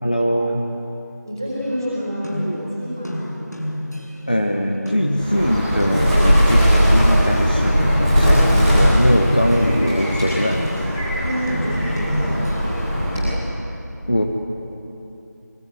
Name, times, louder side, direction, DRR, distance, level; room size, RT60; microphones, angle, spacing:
voice 1, 0.0-0.6 4.3-10.7 14.1-14.2, equal, 30° left, 2 dB, 1.1 m, -21 dB
voice 2, 1.2-3.4 11.1-13.3, equal, 10° right, -6 dB, 4.5 m, -28 dB
sound 1, 1.6-4.4 4.9-7.2 7.7-12.9, equal, 65° left, 5.3 m, -30 dB
Bird, 5.1-13.4, equal, 5° left, 4.6 m, -18 dB
23.5 x 22.5 x 9.6 m, 2.8 s
figure-of-eight pair, 180°, 10 cm